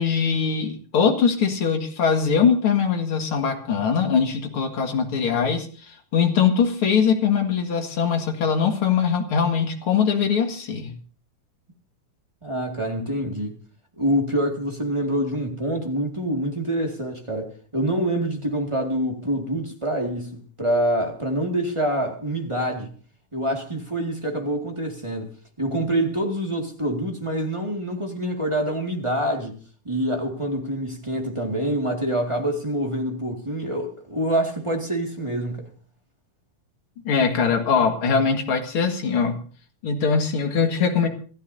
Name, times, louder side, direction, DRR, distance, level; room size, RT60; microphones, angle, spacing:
voice 1, 0.0-10.9 37.0-39.4 39.8-41.1, left 6 dB, 45° left, 2.4 m, -22 dB
voice 2, 12.4-13.6 14.0-22.9 23.3-25.3 25.6-29.5 29.8-35.6, right 1 dB, 15° right, 1.4 m, -26 dB
27.0 x 13.5 x 2.7 m
omnidirectional pair, 3.7 m